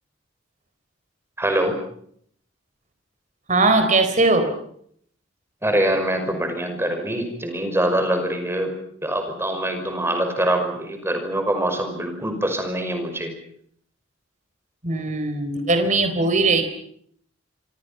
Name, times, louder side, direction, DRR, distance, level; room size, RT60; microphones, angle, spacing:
voice 1, 1.4-1.7 5.6-8.7 9.0-13.3, right 1 dB, 10° right, 6 dB, 5.5 m, -24 dB
voice 2, 3.5-4.5 14.8-16.6, right 3 dB, 40° right, 7 dB, 4.1 m, -19 dB
26.5 x 26.0 x 5.8 m, 0.65 s
head